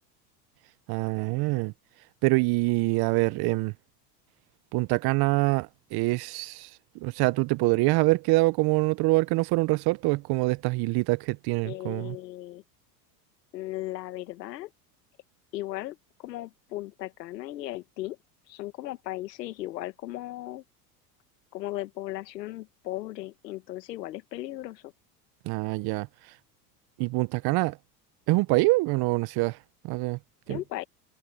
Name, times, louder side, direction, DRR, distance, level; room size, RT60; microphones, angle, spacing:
voice 1, 0.9-1.7 2.2-3.7 4.7-6.7 6.9-12.2 25.4-26.1 27.0-27.8 28.3-29.6 29.8-30.2 30.5-30.6, right 23 dB, 50° right, 0.9 m, -25 dB
voice 2, 11.6-12.6 13.5-14.7 15.5-18.2 18.5-20.6 21.5-24.9 30.5-30.8, left 16 dB, 85° left, 2.0 m, -37 dB
hypercardioid pair, 100°, 49 cm